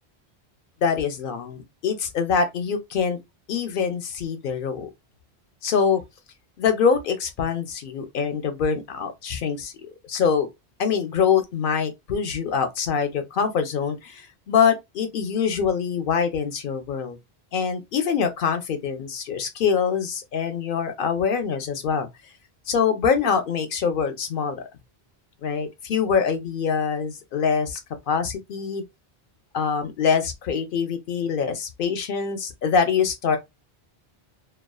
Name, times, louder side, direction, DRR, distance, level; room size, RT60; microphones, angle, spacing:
voice 1, 0.8-3.2 3.5-4.9 5.6-6.0 6.6-9.7 10.1-10.5 10.8-17.2 17.5-22.1 22.7-24.7 25.4-27.8 28.1-28.8 29.5-33.4, left 6 dB, 65° left, 0.7 m, -24 dB
2.4 x 2.2 x 2.3 m
omnidirectional pair, 1.0 m